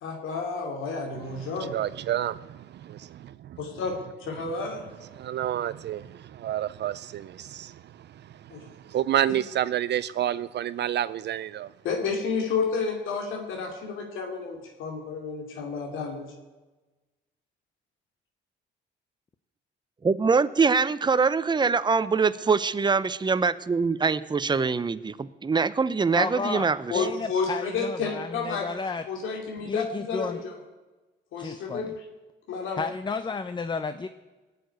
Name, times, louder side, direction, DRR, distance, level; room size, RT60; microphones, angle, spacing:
voice 1, 0.0-1.7 3.6-3.9 4.2-4.9 8.5-8.6 11.8-16.3 26.9-28.7 29.1-30.5 31.3-31.9 32.5-32.8, left 4 dB, 85° left, 2.6 m, -31 dB
voice 2, 1.1-3.6 5.1-11.7, right 11 dB, 60° right, 0.5 m, -30 dB
voice 3, 20.0-27.1, right 5 dB, 20° right, 0.7 m, -24 dB
voice 4, 26.1-26.7 26.9-29.0 29.6-30.4 31.4-32.0 32.8-34.1, left 4 dB, 25° left, 0.7 m, -32 dB
19.0 x 6.9 x 9.5 m
cardioid pair, 90°, 20 cm